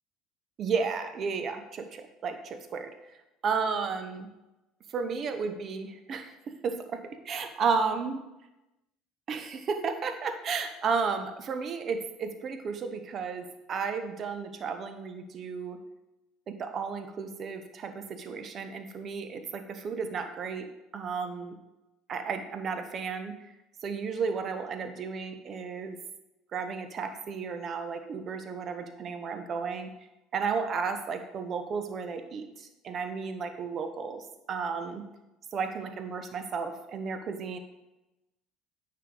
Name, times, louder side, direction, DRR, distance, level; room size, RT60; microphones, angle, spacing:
voice 1, 0.6-2.9 3.4-4.3 4.9-6.3 6.6-8.2 9.3-15.8 16.5-20.7 20.9-21.5 22.1-23.3 23.8-26.0 26.5-29.9 30.3-35.0 35.5-37.6, right 5 dB, 40° right, 8 dB, 0.8 m, -33 dB
9.2 x 3.8 x 3.9 m, 0.97 s
figure-of-eight pair, 65°, 0 cm